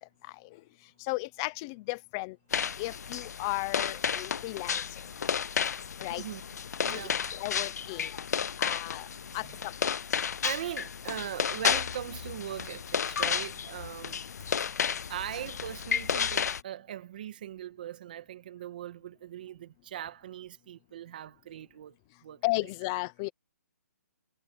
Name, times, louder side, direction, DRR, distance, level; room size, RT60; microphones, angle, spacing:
voice 1, 1.0-2.4 2.8-4.8 6.0-6.2 6.9-8.2 8.6-9.1 9.3-9.7 22.4-23.3, left 22 dB, 15° left, 0.6 m, -34 dB
sound 1, 2.5-16.6, left 7 dB, 70° left, 0.4 m, -32 dB
voice 2, 6.1-6.4 6.8-7.3 9.3-9.6 10.4-14.2 15.1-22.0 22.2-22.4, right 11 dB, 30° right, 2.0 m, -40 dB
hypercardioid pair, 175°, 9 cm